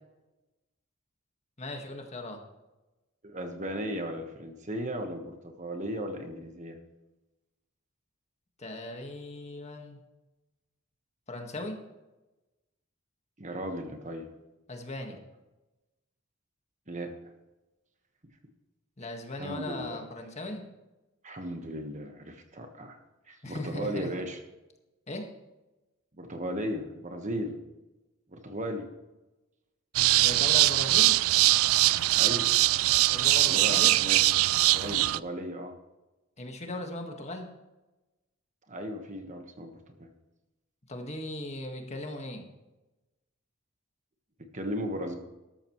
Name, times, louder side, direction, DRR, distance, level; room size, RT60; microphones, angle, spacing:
voice 1, 1.6-2.4 8.6-10.0 11.3-11.8 14.7-15.2 19.0-20.6 23.4-24.1 25.1-25.3 30.2-31.2 33.1-33.9 36.4-37.5 40.9-42.5, left 1 dB, 30° left, 3 dB, 1.7 m, -38 dB
voice 2, 3.2-6.8 13.4-14.3 16.9-17.1 19.4-20.0 21.2-23.0 23.3-24.4 26.2-27.6 28.3-28.9 32.1-32.5 33.4-34.2 34.7-35.7 38.7-40.1 44.5-45.1, equal, 35° right, 5 dB, 1.4 m, -36 dB
sound 1, 29.9-35.2, right 17 dB, 90° right, 0.4 m, -22 dB
13.0 x 13.0 x 3.2 m, 1.0 s
head